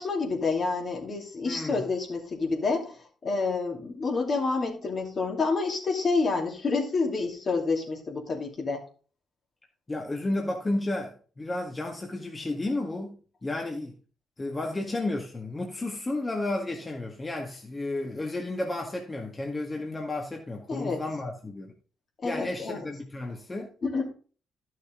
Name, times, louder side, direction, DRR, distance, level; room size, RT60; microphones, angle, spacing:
voice 1, 0.0-3.0 3.2-8.8 20.7-21.0 22.2-22.8 23.8-24.1, left 4 dB, 50° left, 2.7 m, -28 dB
voice 2, 1.5-1.8 9.9-13.9 14.4-21.7 22.2-23.7, left 2 dB, 25° left, 1.8 m, -32 dB
11.5 x 6.5 x 3.7 m
supercardioid pair, 50°, 0 cm